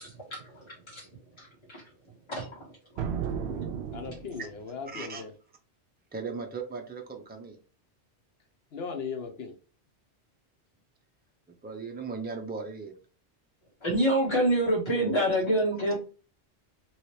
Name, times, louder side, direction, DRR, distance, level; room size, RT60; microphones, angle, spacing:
voice 1, 0.3-1.1 1.4-1.8 2.3-2.7 13.8-15.9, right 1 dB, 25° left, -6 dB, 1.6 m, -27 dB
sound 1, 3.0-4.7, right 7 dB, 70° right, 0.8 m, -34 dB
voice 2, 3.9-5.3 8.7-9.5, left 5 dB, 65° left, 4 dB, 0.9 m, -37 dB
voice 3, 4.9-5.2 6.1-7.6 11.6-12.9 15.0-15.2, right 4 dB, 15° right, 2 dB, 0.3 m, -37 dB
3.1 x 3.1 x 3.2 m, 0.38 s
omnidirectional pair, 1.2 m